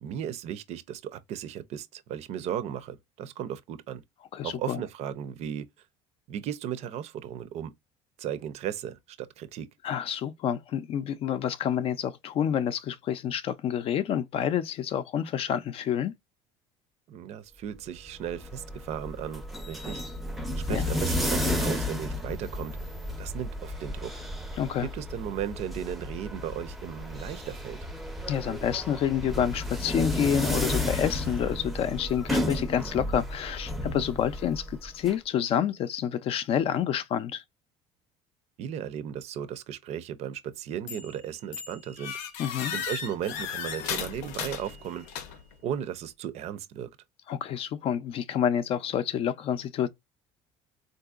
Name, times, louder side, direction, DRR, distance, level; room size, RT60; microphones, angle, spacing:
voice 1, 0.0-4.0 4.4-5.7 6.3-7.7 8.2-9.7 17.1-19.4 19.7-20.0 20.7-22.7 23.2-24.1 24.8-27.8 38.6-42.1 42.7-45.1 45.6-46.9, right 9 dB, 55° right, 0.5 m, -35 dB
voice 2, 4.3-4.8 9.8-16.1 20.7-20.9 24.6-24.9 28.3-37.4 42.4-42.7 47.3-49.9, left 9 dB, 50° left, 0.4 m, -28 dB
sound 1, 18.1-35.1, left 1 dB, ahead, 0.6 m, -33 dB
sound 2, 40.9-41.2 41.5-45.6, left 7 dB, 85° left, 0.7 m, -36 dB
3.7 x 2.6 x 2.4 m
cardioid pair, 120°, 13 cm